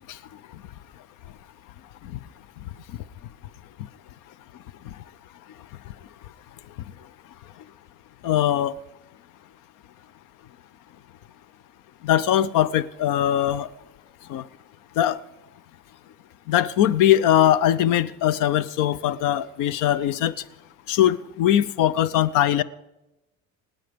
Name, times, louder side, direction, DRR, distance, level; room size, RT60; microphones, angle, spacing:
voice 1, 8.2-8.7 12.0-13.7 14.3-14.4 15.0-15.2 16.5-20.3 20.9-22.6, left 11 dB, 75° left, 18 dB, 0.7 m, -21 dB
26.5 x 9.0 x 5.2 m, 0.98 s
cardioid pair, 175°, 32 cm